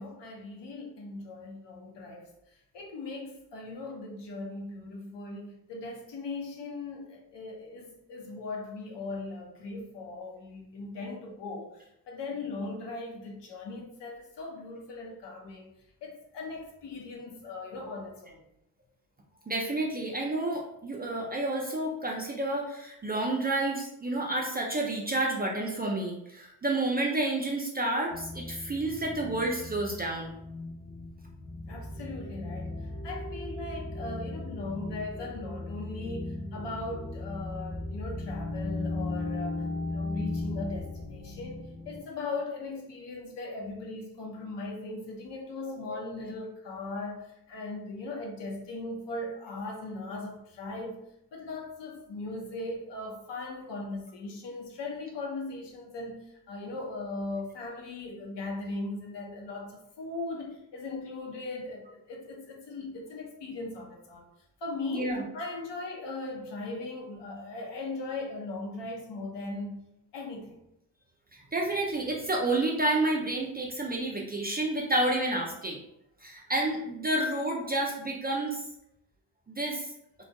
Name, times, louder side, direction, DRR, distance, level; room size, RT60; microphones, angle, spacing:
voice 1, 0.0-2.3 2.7-15.7 16.0-18.4 31.7-32.7 33.0-51.0 51.3-64.2 64.6-69.9 70.1-70.6, left 2 dB, 60° left, 0.8 m, -39 dB
voice 2, 19.5-30.3 45.7-46.0 64.9-65.2 71.3-75.8 76.2-78.6 79.5-79.9, right 2 dB, 20° right, 0.4 m, -30 dB
sound 1, 28.1-42.0, left 2 dB, 25° left, 1.0 m, -37 dB
2.5 x 2.3 x 2.2 m
hypercardioid pair, 45°, 48 cm